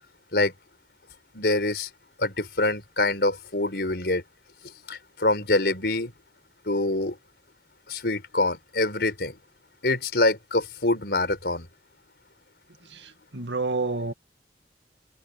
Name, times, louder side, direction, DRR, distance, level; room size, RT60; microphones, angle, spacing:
voice 1, 1.3-1.9 2.2-4.2 4.9-6.1 6.7-7.2 7.9-9.4 9.8-11.7, left 2 dB, 65° left, 4.5 m, -25 dB
voice 2, 12.9-14.1, right 3 dB, 85° right, 2.0 m, -29 dB
head